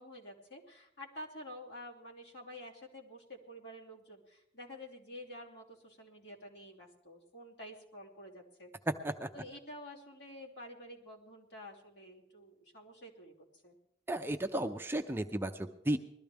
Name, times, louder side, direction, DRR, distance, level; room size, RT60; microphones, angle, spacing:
voice 1, 0.0-8.7 9.3-13.8, left 1 dB, 70° left, -2 dB, 3.0 m, -50 dB
voice 2, 8.9-9.3 14.1-16.0, right 1 dB, 10° right, 6 dB, 0.5 m, -34 dB
21.0 x 13.5 x 3.5 m, 0.78 s
head